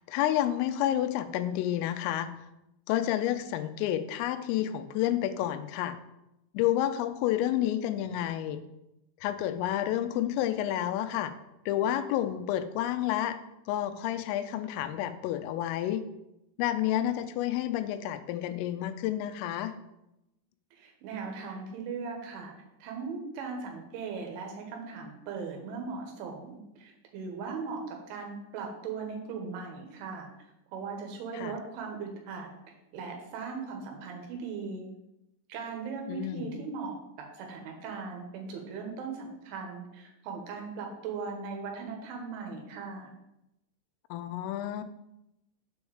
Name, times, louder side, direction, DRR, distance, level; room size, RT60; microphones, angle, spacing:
voice 1, 0.0-2.3 2.9-6.0 6.5-8.6 9.2-11.3 11.7-13.4 13.7-16.1 16.6-19.7 31.3-31.5 36.1-36.6 44.1-44.8, left 12 dB, 90° left, 10 dB, 3.3 m, -30 dB
voice 2, 20.7-22.5 22.8-30.3 30.7-34.9 35.5-43.1, right 5 dB, 75° right, 2 dB, 3.7 m, -39 dB
7.8 x 4.7 x 7.2 m, 0.88 s
omnidirectional pair, 5.7 m